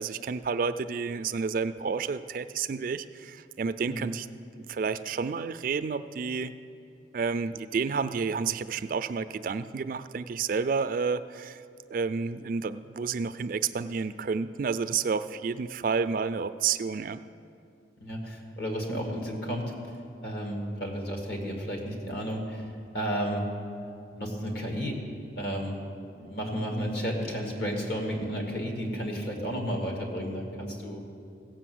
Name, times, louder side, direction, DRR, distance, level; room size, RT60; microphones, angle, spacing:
voice 1, 0.0-4.3 4.7-6.5 7.1-11.6 11.9-17.2, right 5 dB, 50° right, 12 dB, 0.3 m, -30 dB
voice 2, 18.0-19.7 20.2-22.6 22.9-23.5 24.1-25.0 25.3-25.8 26.1-31.0, equal, 60° left, 1 dB, 2.1 m, -32 dB
16.0 x 6.4 x 7.8 m, 2.5 s
head